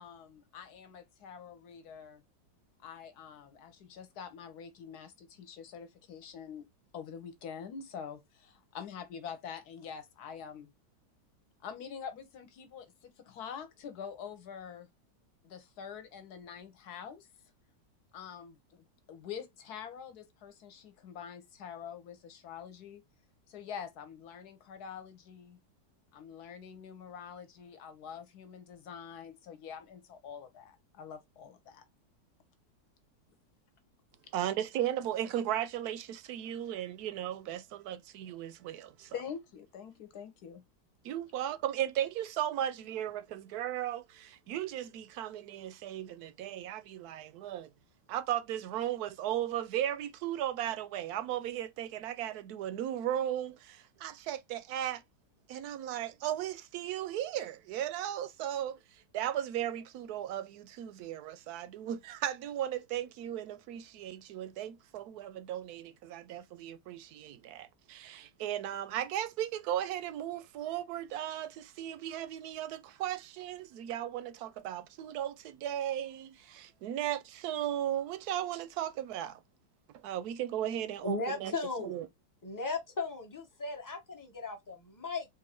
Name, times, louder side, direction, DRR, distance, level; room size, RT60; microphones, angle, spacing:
voice 1, 0.0-2.2 2.8-6.6 6.9-10.7 11.6-14.9 15.4-17.3 18.1-23.0 23.5-25.6 26.1-31.8 39.1-40.6, left 7 dB, 65° left, 1.3 m, -46 dB
voice 2, 34.3-39.1 41.0-47.7 48.1-55.0 55.5-79.4 80.0-81.5 81.8-82.1, right 11 dB, 70° right, 0.9 m, -36 dB
voice 3, 81.0-82.1 82.4-85.3, left 3 dB, 15° left, 0.7 m, -37 dB
3.8 x 2.6 x 4.2 m
omnidirectional pair, 2.0 m